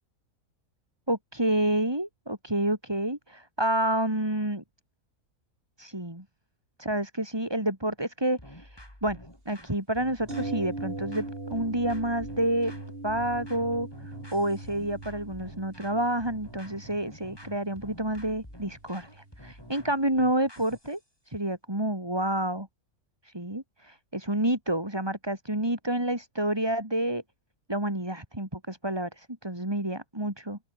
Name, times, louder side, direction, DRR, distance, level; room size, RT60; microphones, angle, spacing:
voice 1, 1.1-4.6 5.8-6.2 6.8-9.2 9.5-11.2 11.5-12.7 13.0-13.9 14.3-21.0 21.3-22.7 23.2-27.2 27.7-30.6, right 1 dB, 15° right, 4.2 m, -29 dB
sound 1, 8.4-21.0, left 1 dB, 15° left, 6.8 m, -49 dB
sound 2, 10.3-20.2 20.5-20.6, right 2 dB, 40° right, 4.4 m, -41 dB
open air
omnidirectional pair, 1.6 m